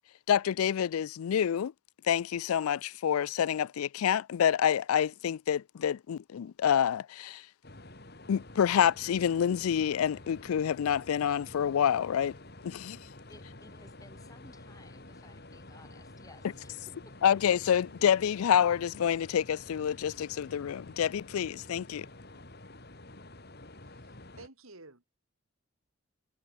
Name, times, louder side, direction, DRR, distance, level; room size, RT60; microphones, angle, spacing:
voice 1, 0.3-1.7 2.0-7.4 8.3-12.4 12.6-13.0 17.2-22.1, left 8 dB, 90° left, 0.4 m, -27 dB
sound 1, 7.6-24.5, left 2 dB, 50° left, 2.9 m, -50 dB
voice 2, 13.3-17.2, left 2 dB, 15° left, 1.3 m, -57 dB
voice 3, 23.8-25.1, right 2 dB, 80° right, 4.0 m, -53 dB
head